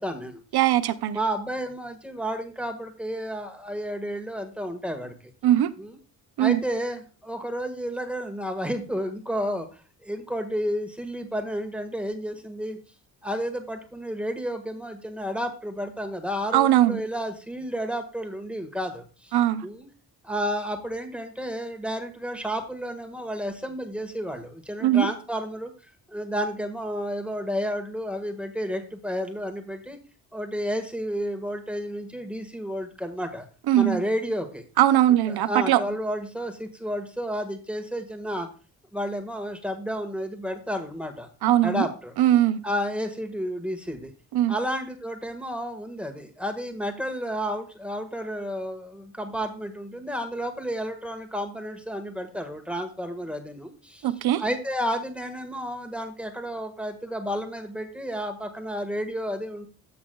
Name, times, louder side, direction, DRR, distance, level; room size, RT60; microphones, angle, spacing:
voice 1, 0.0-0.4 1.1-5.1 5.8-6.0 6.4-12.8 13.2-19.4 19.6-19.9 20.2-25.7 26.1-30.0 30.3-33.5 33.7-34.6 35.1-38.5 38.9-41.3 41.6-42.1 42.6-44.1 44.5-54.1 54.4-59.7, equal, 5° right, 6 dB, 1.6 m, -31 dB
voice 2, 0.5-1.2 5.4-5.7 6.4-6.6 16.5-17.0 19.3-19.6 24.8-25.1 33.7-34.0 34.8-35.8 41.4-41.9 42.2-42.6 44.3-44.5 54.0-54.4, right 12 dB, 90° right, 14 dB, 0.7 m, -20 dB
14.5 x 6.0 x 2.3 m, 0.35 s
cardioid pair, 75°, 37 cm